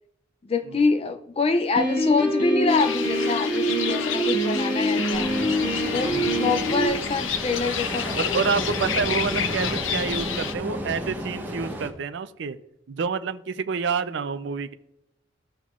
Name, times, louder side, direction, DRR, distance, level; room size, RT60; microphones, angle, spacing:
voice 1, 0.4-5.3 5.9-8.6, left 3 dB, 30° left, 8 dB, 0.4 m, -26 dB
Piano, 1.7-6.9, equal, 60° left, 2.4 m, -25 dB
sound 1, 2.7-10.5, left 8 dB, 80° left, 0.7 m, -30 dB
Ocean, 5.1-11.9, equal, 10° right, 1.2 m, -32 dB
voice 2, 8.1-12.6 12.9-14.7, right 5 dB, 65° right, 11 dB, 0.5 m, -28 dB
15.0 x 5.6 x 2.4 m, 0.84 s
head